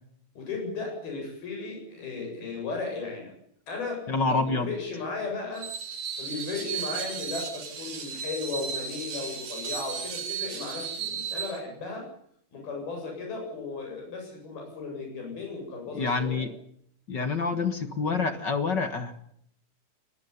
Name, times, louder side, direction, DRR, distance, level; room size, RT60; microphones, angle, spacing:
voice 1, 0.4-3.3 3.7-4.3 4.6-5.7 6.2-12.1 12.5-16.5, left 4 dB, 80° left, 1 dB, 9.7 m, -35 dB
voice 2, 4.1-4.7 15.9-16.5 17.1-19.3, left 4 dB, 50° left, 9 dB, 1.3 m, -27 dB
Screech, 5.5-11.6, right 6 dB, 55° right, 4.8 m, -35 dB
21.5 x 19.0 x 9.8 m, 0.69 s
omnidirectional pair, 4.3 m